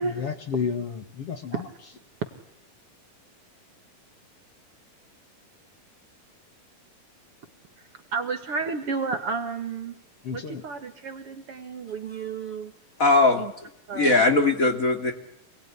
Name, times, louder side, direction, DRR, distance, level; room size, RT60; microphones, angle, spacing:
voice 1, 0.0-1.7 10.2-10.6, left 6 dB, 50° left, 2.5 m, -31 dB
voice 2, 8.1-9.9 10.3-12.7 13.4-13.5 13.9-14.1, right 4 dB, 50° right, 2.3 m, -31 dB
voice 3, 13.0-13.4 13.9-15.1, left 3 dB, 25° left, 2.5 m, -20 dB
28.0 x 20.5 x 10.0 m
omnidirectional pair, 3.8 m